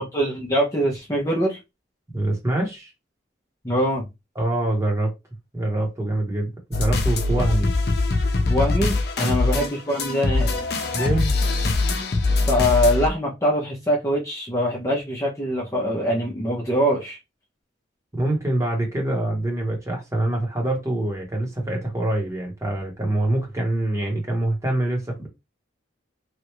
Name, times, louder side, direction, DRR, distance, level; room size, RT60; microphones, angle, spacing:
voice 1, 0.0-1.6 3.6-4.0 8.5-10.5 12.4-17.2, equal, 15° left, 0.7 m, -23 dB
voice 2, 2.1-2.9 4.3-5.1 5.5-7.7 9.2-9.3 10.9-11.3 18.1-25.3, right 1 dB, 15° right, 1.1 m, -25 dB
sound 1, 6.7-13.1, left 2 dB, 55° left, 0.6 m, -22 dB
3.2 x 2.5 x 3.0 m
head